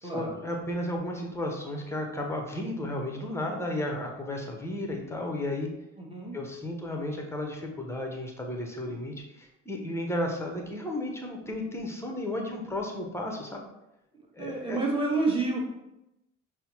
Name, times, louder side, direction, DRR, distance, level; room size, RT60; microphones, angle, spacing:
voice 1, 0.0-5.7 6.3-13.6 14.3-14.9, left 1 dB, 5° left, 1 dB, 0.8 m, -33 dB
voice 2, 6.0-6.4 14.4-15.6, right 3 dB, 15° right, -1 dB, 1.1 m, -29 dB
5.4 x 2.0 x 2.8 m, 0.90 s
hypercardioid pair, 50°, 39 cm